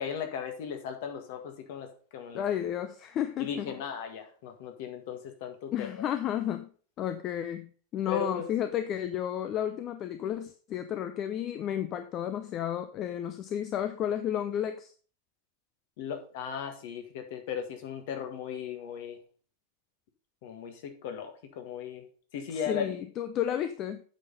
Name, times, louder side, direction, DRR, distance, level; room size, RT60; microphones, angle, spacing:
voice 1, 0.0-2.4 3.4-5.9 8.1-8.4 16.0-19.2 20.4-22.0 22.3-22.9, left 7 dB, 50° left, 5 dB, 1.7 m, -37 dB
voice 2, 2.3-3.8 5.7-6.7 7.0-14.9 22.5-24.0, left 10 dB, 35° left, 9 dB, 0.6 m, -32 dB
8.3 x 5.6 x 5.3 m, 0.42 s
figure-of-eight pair, 90°, 0 cm